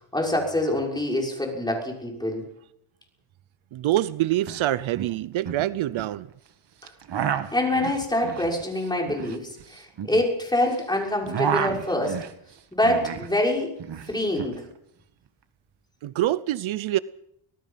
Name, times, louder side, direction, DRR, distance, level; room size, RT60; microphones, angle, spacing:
voice 1, 0.0-2.5 7.5-12.2 12.7-13.7 14.1-14.6, left 1 dB, 10° left, 6.1 m, -25 dB
voice 2, 3.7-6.3 16.0-17.0, right 14 dB, 70° right, 0.8 m, -25 dB
sound 1, 3.9-4.0 4.3-4.6 4.9-6.1 6.8-10.8 11.1-13.3 13.6-14.6, right 9 dB, 55° right, 1.8 m, -31 dB
25.0 x 18.5 x 5.8 m
cardioid pair, 135°, 49 cm